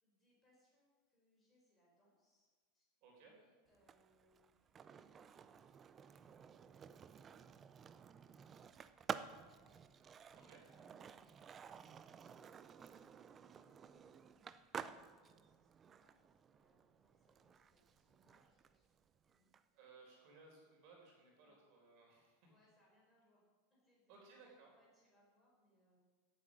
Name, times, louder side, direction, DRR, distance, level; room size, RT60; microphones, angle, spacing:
voice 1, 0.0-2.5 2.7-2.9 3.2-8.7 9.2-9.5 10.3-11.8 12.1-18.8 19.2-19.5 21.4-21.6 22.5-23.4 23.7-24.2 24.7-26.0, left 1 dB, 15° left, -4 dB, 4.2 m, -77 dB
voice 2, 3.0-3.3 10.5-10.6 19.7-22.5 24.1-24.7, right 4 dB, 45° right, -1 dB, 4.0 m, -62 dB
Skateboard, 3.7-19.6, right 7 dB, 20° right, 0.4 m, -52 dB
16.5 x 8.3 x 6.3 m, 1.5 s
supercardioid pair, 170°, 0 cm